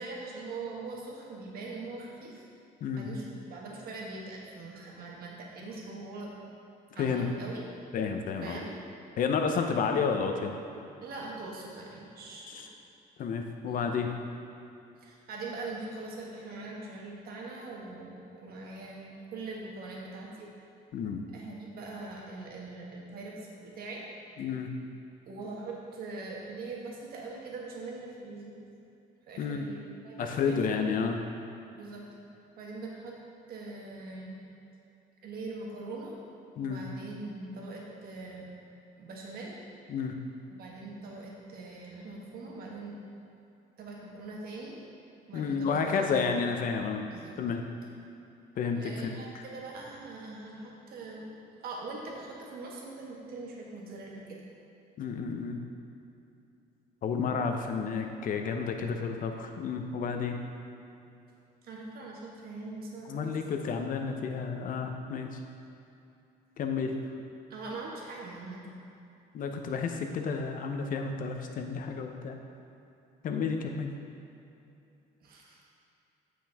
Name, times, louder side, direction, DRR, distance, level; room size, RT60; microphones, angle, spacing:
voice 1, 0.0-2.5 3.0-6.3 6.9-7.6 8.4-8.7 11.0-12.7 13.7-13.9 15.0-20.5 21.3-24.0 25.2-28.6 29.3-30.9 31.7-32.0 32.6-33.2 33.5-34.4 35.2-36.2 36.6-38.5 39.0-39.7 40.5-43.0 43.8-44.8 45.3-46.2 47.1-47.4 48.7-51.3 51.6-54.5 61.6-63.2 67.5-68.6 75.2-75.6, right 3 dB, 65° right, -2 dB, 1.5 m, -42 dB
voice 2, 7.0-7.3 7.9-8.6 9.2-10.5 12.5-12.7 13.2-14.1 20.9-21.2 24.4-24.7 29.4-29.6 30.2-31.2 36.6-36.9 39.9-40.1 45.3-47.0 47.4-47.6 48.6-49.4 55.0-55.6 57.0-60.4 63.1-65.4 66.6-66.9 69.3-72.4 73.2-73.9, left 5 dB, 55° left, 4 dB, 0.7 m, -31 dB
8.0 x 6.2 x 3.6 m, 2.7 s
cardioid pair, 110°, 17 cm